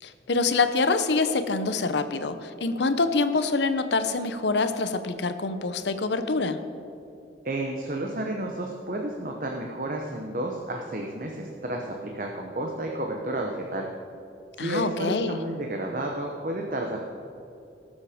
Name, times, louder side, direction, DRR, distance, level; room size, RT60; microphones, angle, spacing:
voice 1, 0.0-6.6 14.6-15.4, left 3 dB, 75° left, 10 dB, 0.8 m, -25 dB
voice 2, 7.4-13.9 14.6-17.0, right 1 dB, 45° right, 1 dB, 0.9 m, -31 dB
18.5 x 7.3 x 5.1 m, 2.7 s
head